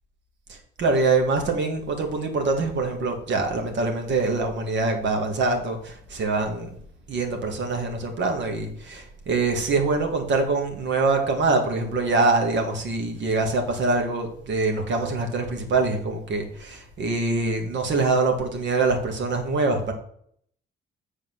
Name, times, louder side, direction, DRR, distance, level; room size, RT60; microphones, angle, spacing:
voice 1, 0.5-6.8 7.1-19.9, right 3 dB, 65° right, 4 dB, 2.2 m, -24 dB
7.9 x 4.8 x 6.1 m, 0.65 s
cardioid pair, 90°, 20 cm